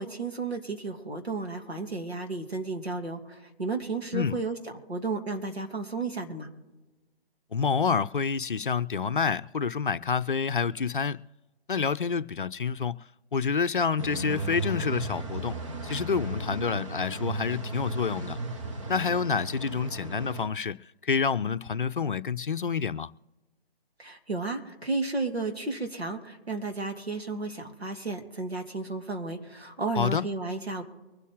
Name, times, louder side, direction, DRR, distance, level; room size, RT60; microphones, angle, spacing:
voice 1, 0.0-4.6 4.9-6.5 24.0-30.8, right 3 dB, 80° right, 2.7 m, -33 dB
voice 2, 7.5-11.2 11.7-18.4 18.9-20.8 21.0-23.1 30.0-30.2, left 6 dB, 55° left, 0.6 m, -28 dB
sound 1, 14.0-20.5, right 2 dB, 30° right, 1.3 m, -35 dB
24.0 x 8.3 x 3.6 m
figure-of-eight pair, 145°, 31 cm